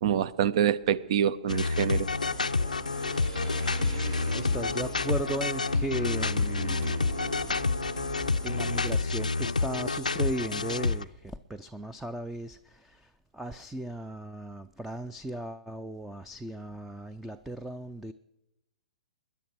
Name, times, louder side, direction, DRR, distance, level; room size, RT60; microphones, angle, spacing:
voice 1, 0.0-2.1, right 9 dB, 50° right, 0.7 m, -26 dB
sound 1, 1.5-11.0, left 3 dB, 85° left, 0.5 m, -29 dB
sound 2, 1.7-9.0, right 4 dB, 70° right, 4.6 m, -41 dB
voice 2, 4.3-7.0 8.4-18.1, right 1 dB, 5° right, 0.5 m, -37 dB
sound 3, 6.7-7.2 8.7-9.2 10.7-11.0, right 6 dB, 30° right, 1.4 m, -49 dB
21.0 x 10.5 x 6.2 m
figure-of-eight pair, 120°, 4 cm